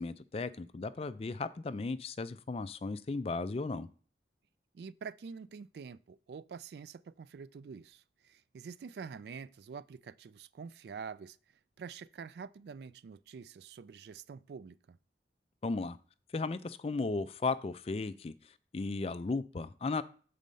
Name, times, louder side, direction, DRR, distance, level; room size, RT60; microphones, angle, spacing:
voice 1, 0.0-3.9 15.6-16.0 16.3-18.3 18.7-20.0, left 3 dB, 35° left, 0.4 m, -35 dB
voice 2, 4.7-11.4 11.8-15.0, right 5 dB, 65° right, 0.3 m, -46 dB
7.6 x 4.2 x 5.3 m
head